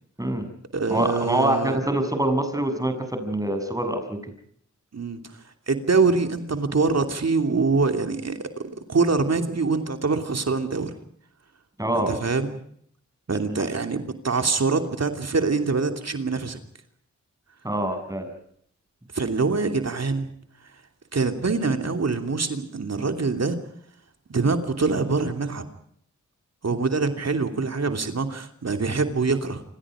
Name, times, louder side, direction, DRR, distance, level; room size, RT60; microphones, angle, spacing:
voice 1, 0.2-0.5 0.9-4.2 11.8-12.1 17.6-18.3, right 1 dB, 10° right, 7 dB, 7.0 m, -25 dB
voice 2, 0.7-1.8 4.9-5.2 5.7-10.9 12.0-12.5 13.3-16.6 19.1-20.3 21.1-23.6 24.3-25.7 26.6-29.6, right 4 dB, 60° right, 6 dB, 3.0 m, -24 dB
28.0 x 26.5 x 5.0 m, 0.64 s
wide cardioid pair, 75°, 29 cm